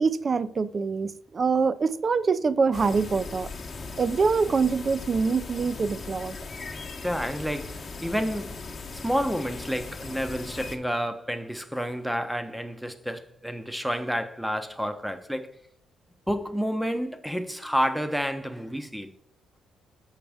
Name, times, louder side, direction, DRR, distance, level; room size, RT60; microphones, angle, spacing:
voice 1, 0.0-3.5 4.0-6.4, right 5 dB, 40° right, 0.4 m, -24 dB
sound 1, 2.7-10.8, left 4 dB, 40° left, 0.9 m, -39 dB
voice 2, 7.0-8.6 9.0-15.5 16.3-19.1, equal, ahead, 0.7 m, -30 dB
7.2 x 5.1 x 3.4 m
cardioid pair, 90°, 0 cm